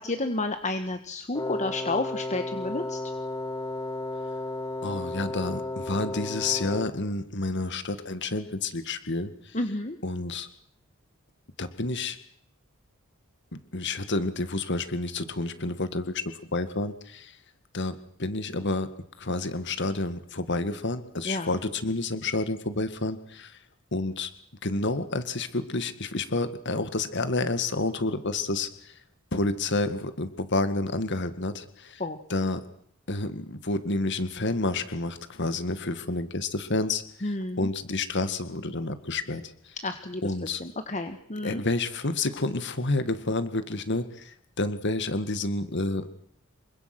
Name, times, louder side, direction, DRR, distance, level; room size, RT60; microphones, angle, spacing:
voice 1, 0.0-3.0 9.5-10.0 21.2-21.6 32.0-32.2 37.2-37.7 39.8-41.6, left 2 dB, 35° left, 8 dB, 1.6 m, -31 dB
Wind instrument woodwind instrument, 1.3-7.1, left 2 dB, 20° left, 2.4 m, -33 dB
voice 2, 4.8-9.6 10.0-10.5 11.6-12.2 13.5-16.2 16.5-17.4 17.7-18.9 19.2-23.5 23.9-24.3 24.6-28.9 29.3-32.0 32.3-32.6 33.1-39.7 40.2-40.6 41.4-46.1, left 2 dB, 55° left, 11 dB, 2.0 m, -29 dB
28.5 x 24.5 x 6.2 m, 0.65 s
head